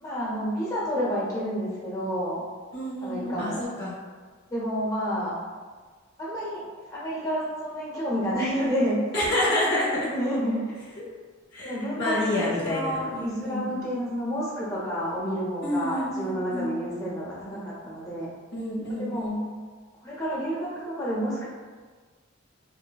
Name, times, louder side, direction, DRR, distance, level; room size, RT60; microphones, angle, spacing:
voice 1, 0.0-2.4 3.0-3.6 4.5-5.3 6.2-6.6 6.9-9.3 10.1-10.6 11.6-18.3 19.0-19.3 20.0-21.5, equal, 15° left, -7 dB, 0.8 m, -29 dB
voice 2, 2.7-3.9 9.1-10.1 11.5-13.9 15.6-16.8 18.5-19.5, left 1 dB, 55° left, -7 dB, 0.6 m, -28 dB
3.1 x 2.1 x 2.2 m, 1.5 s
head